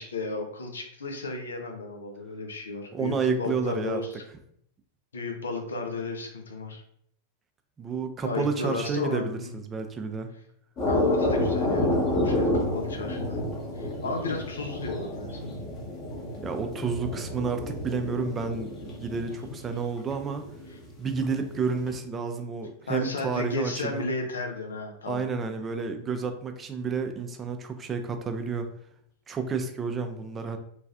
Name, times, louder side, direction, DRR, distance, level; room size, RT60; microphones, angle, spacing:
voice 1, 0.0-4.2 5.1-6.8 8.2-9.5 10.8-13.4 13.7-15.7 19.3-19.4 20.7-20.8 22.9-25.3, left 3 dB, 80° left, 3 dB, 0.5 m, -33 dB
voice 2, 2.9-4.0 7.8-10.3 16.4-20.4 21.0-24.1 25.1-28.7 29.3-30.6, right 5 dB, 25° right, 6 dB, 0.4 m, -30 dB
sound 1, 10.8-19.8 20.1-20.8 21.1-21.6 21.9-22.0, left 1 dB, 40° left, 0.9 m, -30 dB
3.1 x 2.4 x 2.4 m, 0.69 s
figure-of-eight pair, 95°, 0 cm